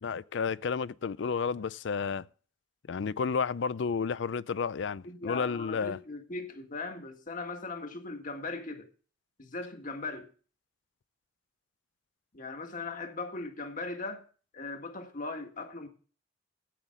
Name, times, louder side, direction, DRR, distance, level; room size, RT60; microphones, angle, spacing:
voice 1, 0.0-2.2 2.9-6.0, left 5 dB, 70° left, 0.4 m, -31 dB
voice 2, 5.0-8.9 9.4-10.3 12.3-14.2 14.5-15.9, left 3 dB, 45° left, 1.7 m, -39 dB
15.0 x 9.0 x 3.7 m
head